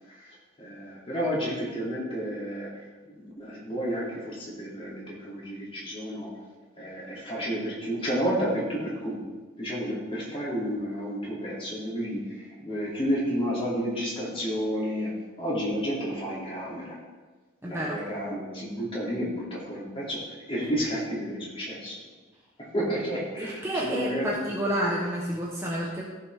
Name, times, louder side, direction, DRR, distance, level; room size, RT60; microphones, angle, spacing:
voice 1, 0.1-2.7 3.1-6.3 6.8-9.2 9.6-15.1 15.4-17.0 17.6-20.2 20.5-22.0 22.7-24.5, equal, 25° left, -6 dB, 2.8 m, -31 dB
voice 2, 17.6-18.0 23.4-26.0, right 1 dB, 10° right, -4 dB, 1.0 m, -29 dB
15.0 x 5.8 x 3.5 m, 1.3 s
head